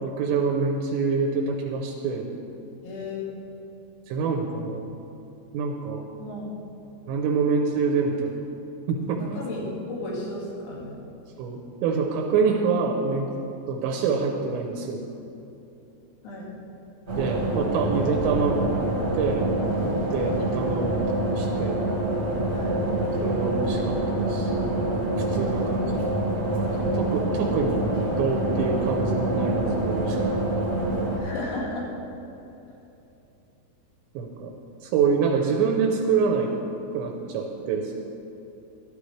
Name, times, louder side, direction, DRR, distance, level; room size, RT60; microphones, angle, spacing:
voice 1, 0.0-2.3 4.1-4.8 5.5-6.1 7.1-8.3 8.9-9.3 11.4-13.3 13.7-15.0 17.2-19.5 19.8-21.8 23.2-24.5 25.2-25.8 26.5-30.3 34.1-34.5 34.8-36.5 36.9-37.9, right 5 dB, 80° right, 1 dB, 2.7 m, -26 dB
voice 2, 2.8-3.2 6.2-6.5 9.1-11.0 16.2-16.5 22.5-22.8 25.5-25.9 31.2-31.9, left 2 dB, 75° left, -4 dB, 4.4 m, -34 dB
sound 1, 17.1-31.2, right 1 dB, 45° right, 1.3 m, -26 dB
13.0 x 12.5 x 3.3 m, 2.9 s
omnidirectional pair, 6.0 m